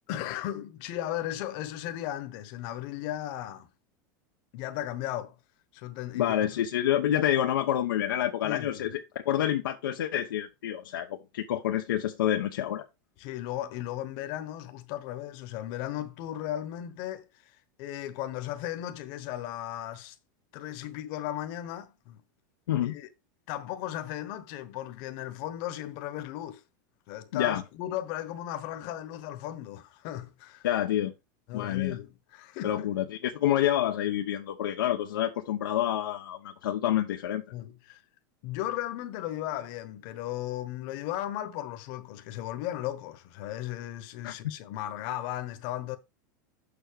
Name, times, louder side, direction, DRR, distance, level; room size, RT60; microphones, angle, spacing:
voice 1, 0.1-3.7 4.5-5.3 5.7-6.5 8.4-8.9 13.2-20.2 20.5-22.2 22.8-23.1 23.5-26.6 27.1-30.7 31.5-32.9 37.5-38.0 38.4-46.0, left 13 dB, 55° left, 1.2 m, -36 dB
voice 2, 6.1-12.9 22.7-23.0 27.3-27.6 30.6-31.1 31.5-32.0 32.6-37.4 44.2-44.5, left 11 dB, 85° left, 0.8 m, -28 dB
6.9 x 4.4 x 5.2 m
supercardioid pair, 120°, 11 cm